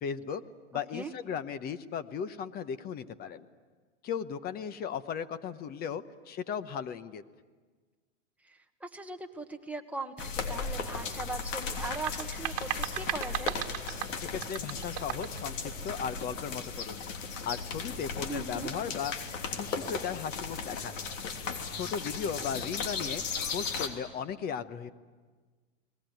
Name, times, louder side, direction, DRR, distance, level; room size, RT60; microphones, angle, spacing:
voice 1, 0.0-0.4 0.7-3.5 4.0-7.2 14.3-17.0 17.4-19.1 19.5-21.0 21.7-23.2 23.5-24.9, left 7 dB, 25° left, 13 dB, 1.0 m, -36 dB
voice 2, 8.4-13.5 18.3-18.7, right 3 dB, 5° right, 4 dB, 1.3 m, -40 dB
sound 1, 10.2-23.9, left 5 dB, 75° left, 3.3 m, -36 dB
sound 2, 11.8-15.4, right 15 dB, 45° right, 2.0 m, -36 dB
30.0 x 20.0 x 9.3 m, 1.4 s
hypercardioid pair, 140°, 39 cm